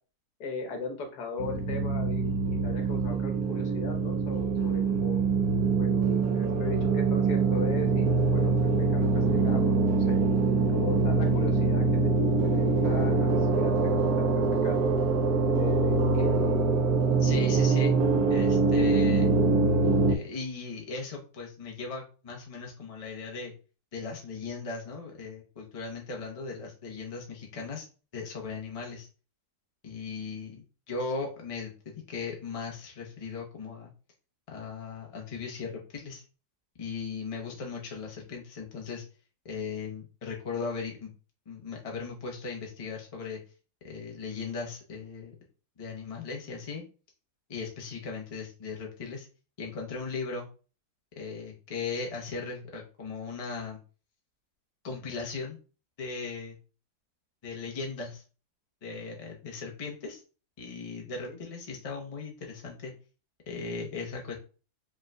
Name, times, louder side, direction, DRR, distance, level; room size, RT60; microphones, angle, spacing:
voice 1, 0.4-5.2 5.8-10.2 10.7-14.9 15.5-16.6 37.3-37.6 61.2-61.4, left 3 dB, 80° left, 3 dB, 1.5 m, -38 dB
sound 1, 1.4-20.2, right 4 dB, 70° right, 1.0 m, -24 dB
voice 2, 17.2-17.9 18.3-19.3 20.1-23.5 23.9-27.9 28.1-29.1 29.8-33.9 34.5-36.2 36.8-39.0 39.4-41.1 41.5-43.4 43.8-45.4 45.8-46.8 47.5-49.3 49.6-50.5 51.2-53.8 54.8-55.6 56.0-56.6 57.4-58.2 58.8-60.2 60.6-62.9 63.5-64.4, left 4 dB, 30° left, 0 dB, 0.7 m, -37 dB
5.1 x 3.6 x 2.2 m, 0.36 s
omnidirectional pair, 1.7 m